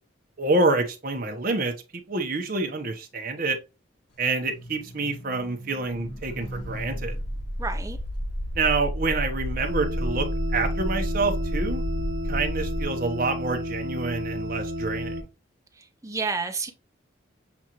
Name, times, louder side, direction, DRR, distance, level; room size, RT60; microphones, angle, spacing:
voice 1, 0.4-3.6 4.2-7.2 8.5-10.3 10.5-11.8 12.2-15.2, right 3 dB, 45° right, 0.9 m, -27 dB
sound 1, 4.1-9.7 10.2-12.1, right 1 dB, 60° left, 1.4 m, -43 dB
sound 2, 6.2-12.8, equal, 80° left, 2.4 m, -30 dB
voice 2, 7.6-8.0 15.7-16.7, right 4 dB, 15° right, 0.5 m, -30 dB
sound 3, 9.6-15.2, equal, 80° right, 0.9 m, -33 dB
7.1 x 2.5 x 2.9 m
head